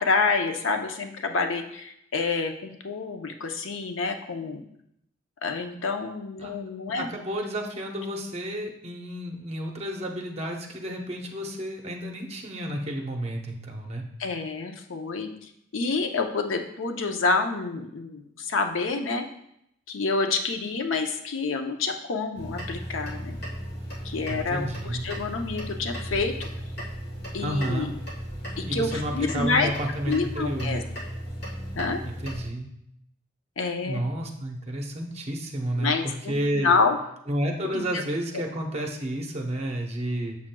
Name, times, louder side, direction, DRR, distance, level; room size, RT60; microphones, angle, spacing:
voice 1, 0.0-4.6 5.4-7.1 14.2-19.2 19.9-23.4 24.0-26.5 27.3-27.9 28.6-29.7 30.1-30.8 31.7-32.0 33.6-34.0 35.8-37.0 37.7-38.0, left 4 dB, 80° left, 5 dB, 0.6 m, -28 dB
voice 2, 6.9-14.0 24.3-25.1 27.4-27.9 28.7-30.8 32.0-32.7 33.8-36.7 37.3-40.4, right 1 dB, 30° right, 1 dB, 0.8 m, -31 dB
sound 1, 22.3-32.5, equal, 55° left, 1.4 m, -36 dB
7.3 x 6.0 x 2.2 m, 0.76 s
head